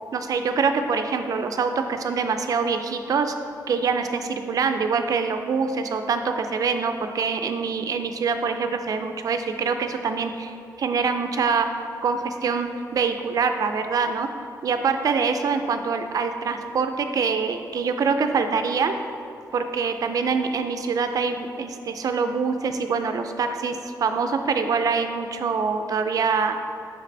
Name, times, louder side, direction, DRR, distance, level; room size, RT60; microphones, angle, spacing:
voice 1, 0.1-3.3 3.7-11.7 12.0-14.3 14.6-18.9 19.5-26.6, right 5 dB, 60° right, 7 dB, 0.4 m, -25 dB
5.9 x 5.0 x 3.3 m, 2.5 s
wide cardioid pair, 145°, 7 cm